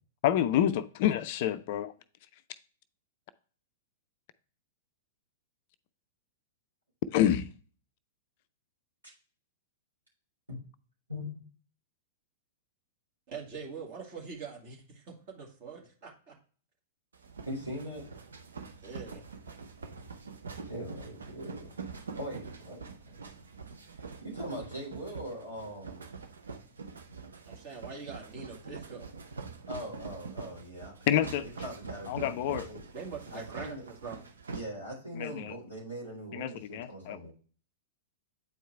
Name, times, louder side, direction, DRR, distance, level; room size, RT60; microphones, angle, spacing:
voice 1, 0.2-1.9 7.1-7.5 31.1-31.5 32.1-32.7 35.1-35.5 36.3-37.2, left 11 dB, 45° left, 0.4 m, -28 dB
voice 2, 11.1-11.4 17.5-18.1 20.7-21.8 22.2-23.2 23.9-26.1 29.7-30.9 31.2-32.8 33.3-33.8 34.5-37.3, equal, 85° right, 3.8 m, -41 dB
voice 3, 13.3-16.4 18.8-19.2 27.5-29.1 32.9-34.2, right 5 dB, 45° right, 1.9 m, -43 dB
sound 1, 17.1-34.6, right 4 dB, 70° right, 0.8 m, -44 dB
8.6 x 4.6 x 3.2 m
figure-of-eight pair, 100°, 0 cm